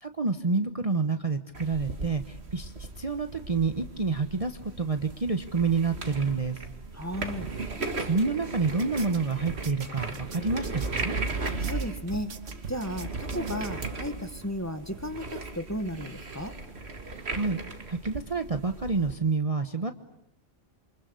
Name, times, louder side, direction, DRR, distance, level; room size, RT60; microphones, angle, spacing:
voice 1, 0.0-2.7 3.0-6.6 8.0-11.2 17.3-17.6 17.9-19.9, right 4 dB, 30° right, 7 dB, 1.1 m, -28 dB
sound 1, 1.5-19.2, right 3 dB, 55° right, 2.3 m, -37 dB
voice 2, 6.9-7.5 11.6-12.3 12.7-16.5, equal, 15° left, 8 dB, 1.7 m, -34 dB
sound 2, 8.6-14.0, right 7 dB, 75° right, 1.6 m, -41 dB
28.5 x 25.0 x 8.2 m, 0.78 s
omnidirectional pair, 1.3 m